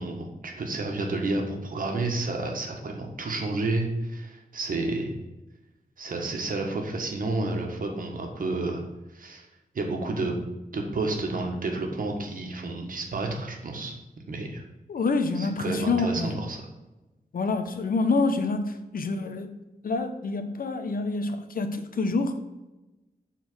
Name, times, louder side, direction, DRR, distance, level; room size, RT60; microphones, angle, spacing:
voice 1, 0.0-5.1 6.0-8.8 9.1-9.4 9.7-10.3 10.7-13.9 14.3-14.6 15.4-16.7, right 2 dB, 65° right, 2 dB, 1.5 m, -30 dB
voice 2, 14.9-16.4 17.3-19.5 19.8-22.4, left 3 dB, 70° left, 7 dB, 0.9 m, -27 dB
7.3 x 4.2 x 6.3 m, 1.0 s
wide cardioid pair, 130°, 15 cm